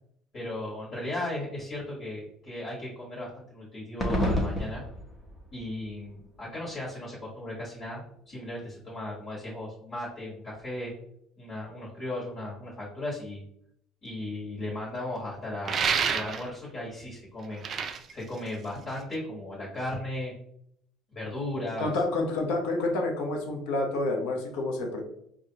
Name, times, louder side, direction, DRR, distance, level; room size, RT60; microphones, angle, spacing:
voice 1, 0.3-4.8 5.5-8.0 8.3-10.9 11.4-13.4 14.0-17.6 18.1-20.3 21.1-21.9, left 1 dB, 40° left, -5 dB, 1.4 m, -36 dB
sound 1, 4.0-6.8, left 1 dB, 15° left, 0.7 m, -31 dB
sound 2, 15.7-16.7 17.4-19.1, right 6 dB, 30° right, 0.3 m, -29 dB
voice 2, 21.8-25.0, left 2 dB, 80° left, 2 dB, 0.9 m, -28 dB
4.9 x 2.5 x 2.8 m, 0.71 s
cardioid pair, 155°, 0 cm